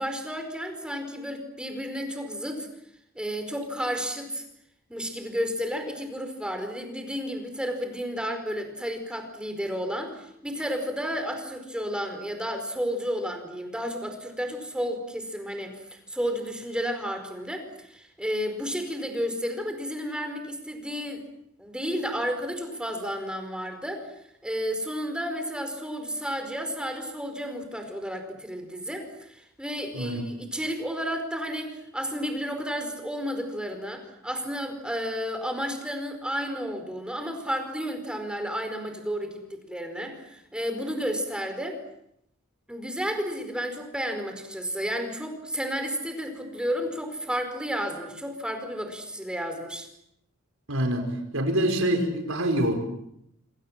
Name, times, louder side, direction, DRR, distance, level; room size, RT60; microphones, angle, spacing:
voice 1, 0.0-2.7 3.1-4.4 4.9-21.2 21.6-24.1 24.4-41.8 42.7-49.9, equal, 5° right, 6 dB, 5.0 m, -32 dB
voice 2, 29.9-30.2 50.7-52.7, right 1 dB, 70° right, 5 dB, 5.1 m, -25 dB
27.0 x 26.5 x 7.6 m, 0.77 s
head